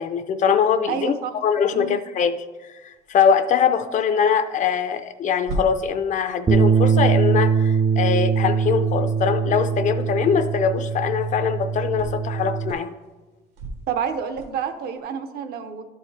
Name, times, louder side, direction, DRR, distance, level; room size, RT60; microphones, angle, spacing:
voice 1, 0.0-1.1 1.4-2.3 2.8-12.9, left 7 dB, 45° left, 11 dB, 0.5 m, -22 dB
voice 2, 0.9-1.3 1.7-2.0 13.9-15.8, right 7 dB, 70° right, 8 dB, 0.7 m, -28 dB
sound 1, 2.9-15.0, right 2 dB, 85° right, 1.4 m, -41 dB
Bass guitar, 6.5-12.7, right 5 dB, 20° right, 0.4 m, -22 dB
11.5 x 4.8 x 3.3 m, 1.2 s
cardioid pair, 110°, 17 cm